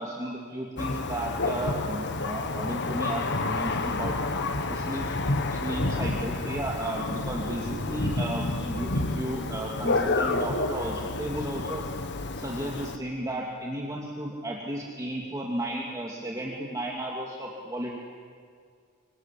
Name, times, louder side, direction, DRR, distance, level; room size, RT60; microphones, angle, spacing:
voice 1, 0.0-4.1 4.7-5.2 5.5-11.8 12.3-17.9, right 1 dB, 15° right, -2 dB, 2.5 m, -34 dB
Thunder, 0.8-13.0, left 2 dB, 50° left, 1.5 m, -29 dB
sound 1, 6.3-11.5, left 3 dB, 75° left, 1.2 m, -45 dB
26.5 x 24.0 x 8.4 m, 2.2 s
head